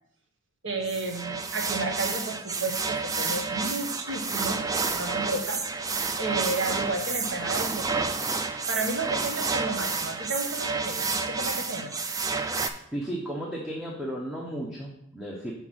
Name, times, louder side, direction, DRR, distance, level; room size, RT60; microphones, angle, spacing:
voice 1, 0.6-4.6 4.9-5.6 6.2-8.2 8.7-12.0, right 2 dB, 75° right, 2 dB, 1.3 m, -32 dB
sound 1, 0.8-12.7, right 4 dB, 20° right, 0.4 m, -30 dB
voice 2, 12.9-15.5, right 1 dB, 5° right, -3 dB, 0.8 m, -34 dB
5.9 x 3.9 x 6.2 m, 0.72 s
head